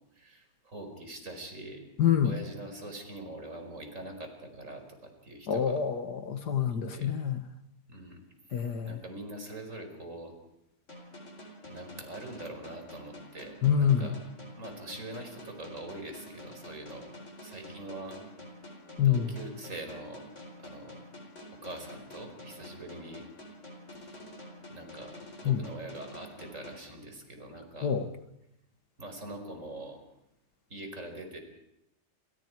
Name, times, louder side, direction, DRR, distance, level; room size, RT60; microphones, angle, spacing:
voice 1, 0.1-1.8 2.2-5.8 6.7-7.1 7.9-8.2 8.5-10.3 11.6-14.1 14.6-17.1 17.4-18.2 19.0-20.2 20.6-21.0 21.5-23.2 24.7-25.1 25.4-27.9 29.0-30.0 30.7-31.4, right 1 dB, 50° right, 5 dB, 5.3 m, -43 dB
voice 2, 2.0-2.3 5.5-7.4 8.5-9.0 13.6-14.2 19.0-19.3 25.4-25.6 27.8-28.1, left 8 dB, 90° left, 8 dB, 2.2 m, -26 dB
sound 1, 10.9-27.5, left 1 dB, 45° left, 4.7 m, -48 dB
29.5 x 27.5 x 4.7 m, 0.83 s
omnidirectional pair, 1.7 m